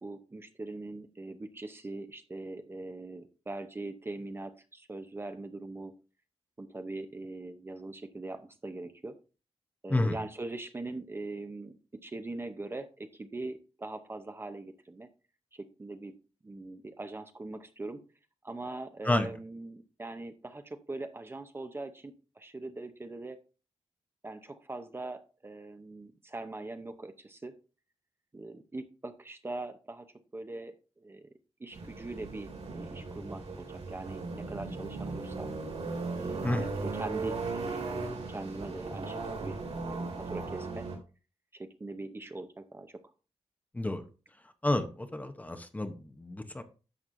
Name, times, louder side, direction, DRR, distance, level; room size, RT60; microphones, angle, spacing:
voice 1, 0.0-5.9 6.6-9.2 9.8-11.8 12.0-15.1 15.5-16.1 16.4-18.0 18.4-23.4 24.2-27.5 28.3-30.1 30.3-31.3 31.6-35.5 36.2-39.6 39.9-40.9 41.5-42.9, right 2 dB, 20° right, 8 dB, 0.7 m, -41 dB
sound 1, 31.7-41.0, right 3 dB, 90° right, 3.9 m, -37 dB
voice 2, 44.6-46.6, left 1 dB, 15° left, 8 dB, 0.7 m, -30 dB
11.0 x 7.2 x 2.6 m, 0.34 s
wide cardioid pair, 155°, 11 cm